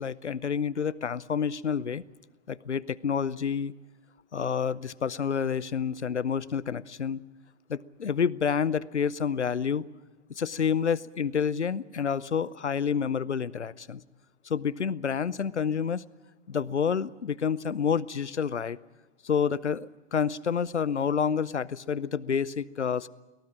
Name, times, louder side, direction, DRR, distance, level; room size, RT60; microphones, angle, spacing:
voice 1, 0.0-2.0 2.5-3.7 4.3-7.2 7.7-9.8 10.4-14.0 14.5-16.0 16.5-18.8 19.2-23.1, left 7 dB, 85° left, 22 dB, 0.7 m, -28 dB
23.0 x 18.5 x 8.6 m, 1.1 s
figure-of-eight pair, 105°, 34 cm